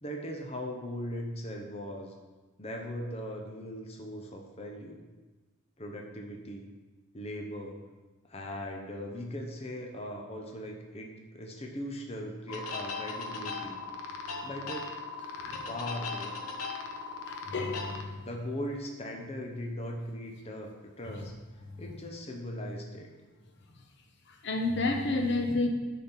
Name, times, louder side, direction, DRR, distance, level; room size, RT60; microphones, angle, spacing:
voice 1, 0.0-2.2 2.6-5.0 5.8-6.7 7.1-7.8 8.3-13.8 14.4-15.0 15.5-16.3 18.2-21.3 21.8-23.1, equal, 30° left, 1 dB, 0.8 m, -39 dB
sound 1, 12.5-18.0, left 4 dB, 80° left, 1.0 m, -38 dB
voice 2, 17.3-18.2 21.7-21.8 24.4-25.7, left 2 dB, 55° left, 3 dB, 0.9 m, -30 dB
10.5 x 4.3 x 5.7 m, 1.3 s
head